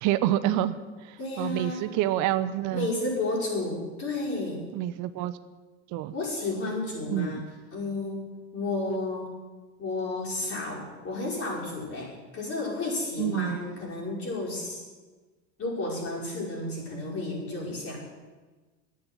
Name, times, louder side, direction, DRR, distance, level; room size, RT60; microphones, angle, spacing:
voice 1, 0.0-2.9 4.7-5.4 5.9-6.1 7.1-7.4 13.2-13.6, right 13 dB, 65° right, 13 dB, 0.8 m, -28 dB
voice 2, 1.2-1.9 2.7-4.7 6.1-7.4 7.7-8.3 8.5-9.3 9.8-14.8 15.6-18.0, left 2 dB, 45° left, -3 dB, 5.5 m, -32 dB
11.0 x 8.8 x 9.8 m, 1.3 s
supercardioid pair, 110°, 32 cm